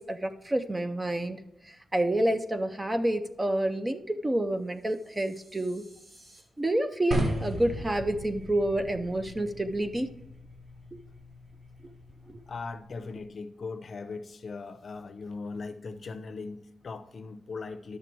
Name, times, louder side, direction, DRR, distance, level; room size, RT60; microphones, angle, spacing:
voice 1, 0.0-1.4 1.7-5.8 6.6-10.1 12.3-12.4, right 1 dB, 15° right, 8 dB, 0.4 m, -28 dB
sound 1, 4.6-6.4, right 1 dB, 65° right, 2.3 m, -57 dB
sound 2, 7.1-13.2, right 1 dB, 45° right, 1.5 m, -37 dB
voice 2, 12.5-18.0, left 4 dB, 40° left, 10 dB, 0.6 m, -39 dB
10.5 x 6.8 x 4.5 m, 0.82 s
wide cardioid pair, 175°, 0 cm